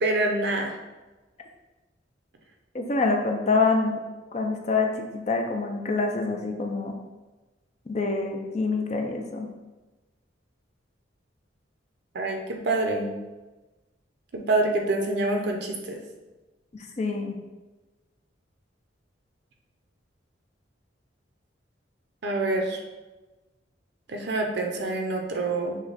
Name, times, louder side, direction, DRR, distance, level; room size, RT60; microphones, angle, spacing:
voice 1, 0.0-0.7 12.1-13.1 14.3-16.0 22.2-22.8 24.1-25.8, right 2 dB, 60° right, 2 dB, 0.5 m, -26 dB
voice 2, 2.7-4.0 4.3-6.9 7.9-9.5 17.0-17.4, left 3 dB, 35° left, 3 dB, 0.5 m, -26 dB
6.0 x 2.2 x 3.9 m, 1.1 s
head